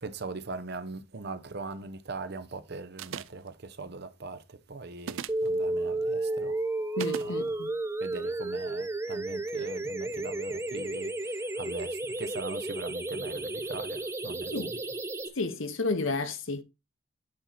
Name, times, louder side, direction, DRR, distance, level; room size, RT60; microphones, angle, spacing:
voice 1, 0.0-6.6 7.2-7.5 8.0-14.7, right 3 dB, 50° right, 0.8 m, -40 dB
sound 1, 3.0-3.5 5.0-5.5 7.0-7.3, right 8 dB, 70° right, 0.4 m, -37 dB
sound 2, 5.3-15.3, right 2 dB, 15° right, 0.5 m, -32 dB
voice 2, 7.0-7.7 14.5-14.7 15.3-16.6, left 3 dB, 70° left, 1.0 m, -31 dB
8.8 x 4.3 x 4.1 m
head